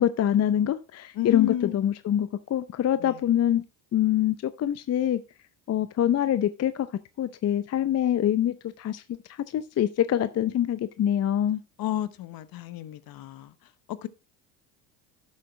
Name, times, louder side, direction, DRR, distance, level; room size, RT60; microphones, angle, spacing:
voice 1, 0.0-3.6 3.9-5.2 5.7-6.9 7.2-9.0 9.3-11.6, left 11 dB, 35° left, 0.7 m, -25 dB
voice 2, 1.1-1.9 3.0-3.2 11.8-13.5 13.9-14.1, left 12 dB, 50° left, 1.1 m, -31 dB
12.0 x 6.4 x 3.2 m
supercardioid pair, 85°, 44 cm